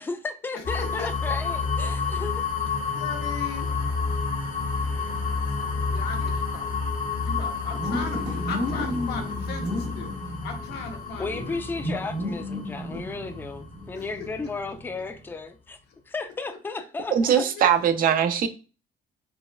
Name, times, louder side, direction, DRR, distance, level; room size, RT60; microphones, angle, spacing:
voice 1, 0.0-2.5 11.2-15.8 16.1-17.5, left 3 dB, 10° left, 0.4 m, -34 dB
voice 2, 0.5-1.4 1.8-1.9 2.9-3.7 4.6-11.6 13.9-14.3 15.9-16.0 16.7-16.8 17.6-17.7 18.1-18.5, left 5 dB, 80° left, 0.9 m, -39 dB
sound 1, 0.6-14.4, left 4 dB, 55° left, 0.8 m, -30 dB
sound 2, 2.1-15.2, left 1 dB, 80° right, 1.4 m, -36 dB
voice 3, 17.1-18.5, right 8 dB, 55° right, 0.5 m, -21 dB
4.0 x 2.2 x 2.2 m
cardioid pair, 110°, 17 cm